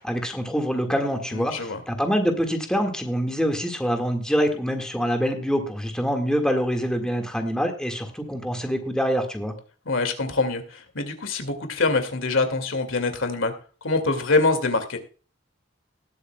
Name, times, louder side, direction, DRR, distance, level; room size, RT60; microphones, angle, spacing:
voice 1, 0.0-9.5, equal, 5° left, 4 dB, 1.8 m, -25 dB
voice 2, 1.3-1.8 9.9-13.5 13.8-15.0, left 3 dB, 90° left, 7 dB, 2.2 m, -24 dB
19.5 x 8.1 x 2.3 m, 0.37 s
head